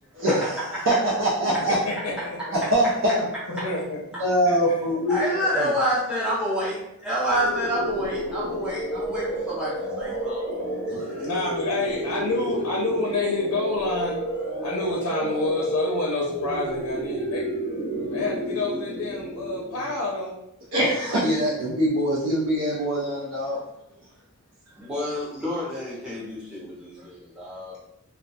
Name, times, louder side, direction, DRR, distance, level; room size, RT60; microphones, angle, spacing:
voice 1, 0.1-0.6 0.9-1.8 2.5-3.2 4.2-5.3 17.9-18.0 20.7-23.6, equal, 60° right, -6 dB, 0.5 m, -23 dB
voice 2, 1.7-2.6 3.5-4.0 4.5-4.6 11.2-14.2 14.6-17.5 18.1-20.4, left 2 dB, 85° left, -2 dB, 0.4 m, -28 dB
voice 3, 5.1-10.4 10.9-11.3 24.8-27.8, equal, 5° right, -8 dB, 0.7 m, -28 dB
sound 1, 7.3-20.1, right 1 dB, 85° right, 1.0 m, -31 dB
2.3 x 2.1 x 2.5 m, 0.85 s
head